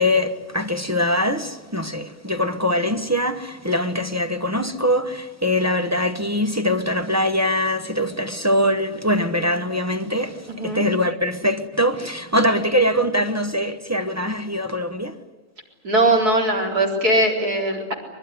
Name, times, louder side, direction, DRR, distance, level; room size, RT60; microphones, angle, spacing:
voice 1, 0.0-15.2, left 1 dB, 15° right, 0.8 m, -22 dB
voice 2, 10.5-10.8 15.8-17.9, right 1 dB, 90° right, 4.6 m, -20 dB
24.5 x 21.0 x 9.6 m
omnidirectional pair, 1.6 m